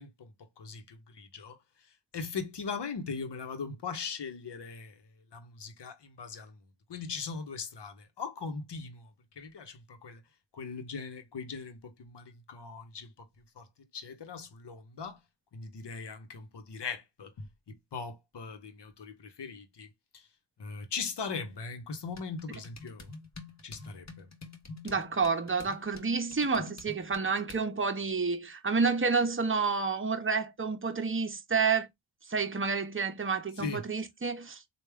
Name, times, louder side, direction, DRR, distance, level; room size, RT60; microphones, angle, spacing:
voice 1, 0.0-1.6 2.1-5.0 5.3-6.6 6.9-9.1 9.4-10.2 10.5-13.1 13.6-13.7 13.9-15.2 15.5-19.9 20.1-20.3 20.6-23.1 23.6-24.3 24.8-24.9 33.6-33.8, left 5 dB, 55° left, 1.1 m, -40 dB
sound 1, 22.1-27.7, left 3 dB, 35° left, 1.1 m, -48 dB
voice 2, 24.8-31.9 32.3-34.6, right 4 dB, 25° right, 0.9 m, -29 dB
3.3 x 2.5 x 3.3 m
cardioid pair, 40°, 50 cm